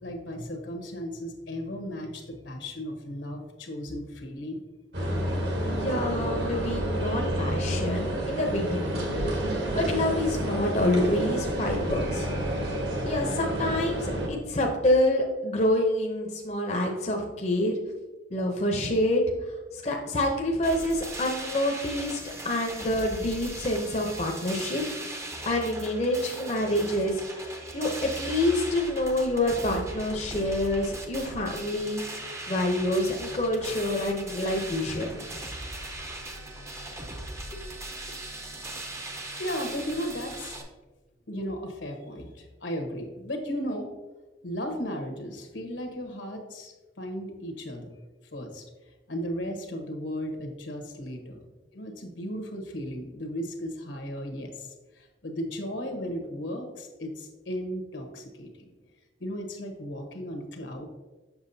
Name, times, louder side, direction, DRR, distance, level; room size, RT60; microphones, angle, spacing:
voice 1, 0.0-4.6 39.4-40.6 41.3-43.9 44.4-47.9 48.3-51.4 51.7-58.7 59.2-60.8, equal, 80° left, 4 dB, 1.1 m, -35 dB
sound 1, 4.9-14.3, right 1 dB, 65° right, 1.3 m, -29 dB
voice 2, 5.6-9.1 9.7-12.3 13.1-17.7 18.3-19.2 19.8-24.8 25.5-32.0 32.5-35.1 37.5-37.6, left 1 dB, 35° left, 1 dB, 0.6 m, -27 dB
sound 2, 20.6-40.6, right 1 dB, 15° right, 0.5 m, -39 dB
7.1 x 6.2 x 2.7 m, 1.2 s
head